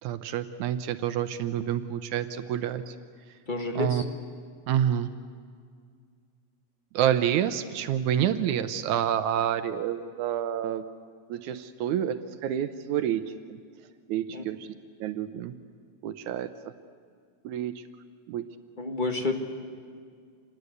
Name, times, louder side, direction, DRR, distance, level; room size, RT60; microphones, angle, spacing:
voice 1, 0.0-3.0 3.8-4.0 4.7-5.1 6.9-10.8 11.3-12.2 12.4-13.2 13.5-13.6 14.1-14.7 15.0-15.5 16.0-16.5 17.4-17.8 18.3-18.4, right 10 dB, 80° right, 10 dB, 2.2 m, -28 dB
voice 2, 3.5-4.0 14.3-14.4 18.8-19.3, left 3 dB, 25° left, 3 dB, 1.1 m, -29 dB
27.5 x 20.5 x 8.1 m, 2.1 s
omnidirectional pair, 3.4 m